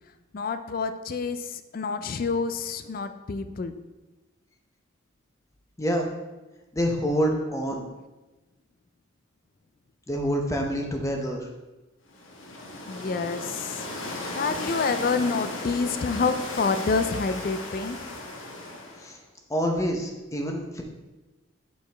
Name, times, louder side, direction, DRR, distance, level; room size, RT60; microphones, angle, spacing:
voice 1, 0.3-3.7 12.9-13.8 14.3-18.0, left 4 dB, 45° left, 10 dB, 0.3 m, -28 dB
voice 2, 6.7-7.9 10.1-11.5 19.0-19.2 19.5-20.8, equal, 15° left, 2 dB, 0.7 m, -27 dB
sound 1, 12.1-19.2, left 2 dB, 70° left, 1.1 m, -36 dB
6.6 x 5.2 x 3.4 m, 1.1 s
head